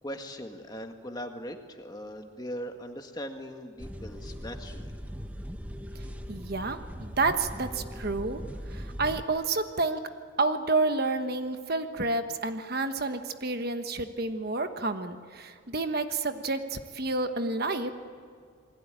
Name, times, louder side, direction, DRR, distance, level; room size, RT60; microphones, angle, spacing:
voice 1, 0.0-5.0, equal, 20° left, 5 dB, 1.8 m, -40 dB
sound 1, 3.8-9.2, equal, 5° right, 1.2 m, -40 dB
voice 2, 6.3-8.4 8.7-10.0 10.4-17.9, right 3 dB, 50° right, 8 dB, 1.2 m, -29 dB
28.0 x 21.0 x 9.0 m, 2.2 s
head